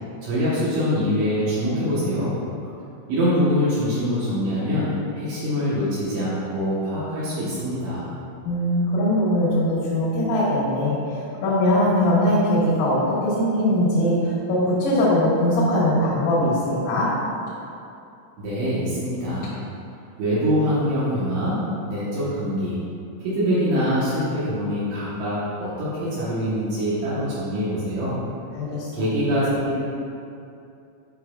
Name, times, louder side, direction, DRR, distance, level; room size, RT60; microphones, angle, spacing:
voice 1, 0.2-2.4 3.1-8.1 18.4-19.5 20.2-22.8 23.2-28.2 28.9-29.8, equal, 70° right, -11 dB, 3.4 m, -24 dB
voice 2, 8.4-17.1 28.6-28.9, left 1 dB, 90° left, -10 dB, 4.2 m, -21 dB
11.5 x 5.6 x 2.4 m, 2.6 s
omnidirectional pair, 5.8 m